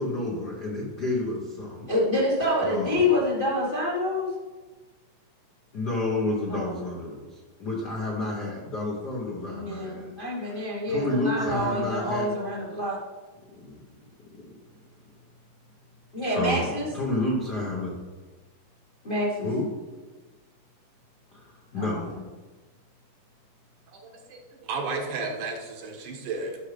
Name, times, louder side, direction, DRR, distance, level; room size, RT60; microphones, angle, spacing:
voice 1, 0.0-1.9 2.6-3.1 5.7-12.3 13.4-13.8 14.3-14.6 16.3-18.0 19.4-19.7 21.3-22.2, left 2 dB, 70° left, -3 dB, 0.9 m, -30 dB
voice 2, 1.9-4.3 6.5-6.8 9.5-13.0 16.1-16.9 19.0-19.5 21.7-22.0, left 1 dB, 45° left, -5 dB, 0.6 m, -27 dB
voice 3, 23.9-26.6, right 4 dB, 75° right, 1 dB, 2.6 m, -33 dB
12.0 x 6.3 x 3.4 m, 1.3 s
omnidirectional pair, 3.8 m